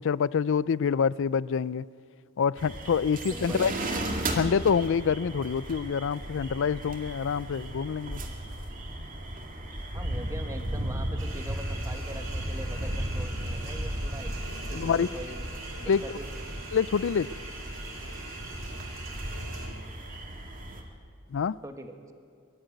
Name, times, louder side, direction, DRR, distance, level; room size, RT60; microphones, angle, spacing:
voice 1, 0.0-1.8 2.4-3.7 4.3-8.2 14.7-15.1 15.9-16.0 16.7-17.3 21.3-21.6, left 6 dB, 60° left, 0.4 m, -26 dB
sound 1, 2.6-20.8, right 1 dB, 40° right, 2.3 m, -35 dB
voice 2, 3.3-3.7 9.9-15.4 15.8-16.3 21.6-22.1, right 1 dB, 15° right, 1.5 m, -42 dB
sound 2, 11.2-19.7, right 2 dB, 90° right, 4.5 m, -42 dB
23.0 x 13.0 x 9.2 m
head